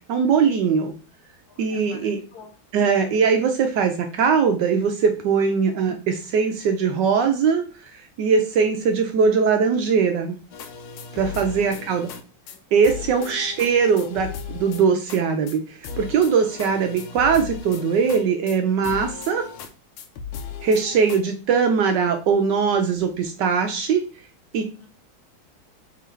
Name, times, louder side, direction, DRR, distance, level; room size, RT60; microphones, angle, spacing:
voice 1, 0.1-0.9 1.6-2.2 2.7-10.3 11.1-12.1 12.7-19.4 20.6-24.0 24.5-24.6, right 6 dB, 70° right, 6 dB, 1.1 m, -21 dB
voice 2, 1.5-3.1 11.1-11.3 11.8-12.2 12.5-12.6 13.0-13.4 16.7-16.8 20.7-20.9 24.8-24.9, left 4 dB, 65° left, 2 dB, 1.0 m, -48 dB
sound 1, 10.5-12.2 12.5-12.6 12.8-15.2 15.5-15.6 15.8-18.6 18.8-19.7 20.0-21.2, left 6 dB, 85° left, 1.5 m, -36 dB
3.8 x 3.1 x 4.4 m, 0.36 s
omnidirectional pair, 2.2 m